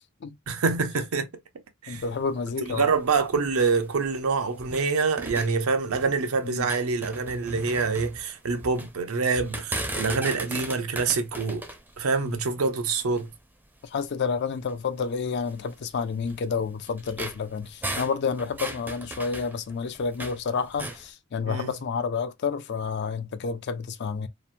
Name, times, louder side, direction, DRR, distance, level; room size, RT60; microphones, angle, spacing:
voice 1, 0.5-1.3 1.8-2.0 2.6-11.6 12.0-13.3 21.5-21.7, right 4 dB, 85° right, 0.6 m, -26 dB
voice 2, 1.9-2.8 6.4-6.7 12.2-12.4 13.9-24.3, left 5 dB, 50° left, 0.4 m, -30 dB
sound 1, 1.9-4.9 5.2-6.2 6.5-8.9 9.3-13.4 14.0-14.1 14.6-14.7 15.5-20.4 20.7-21.1, right 1 dB, 10° right, 0.4 m, -37 dB
2.9 x 2.0 x 2.5 m
head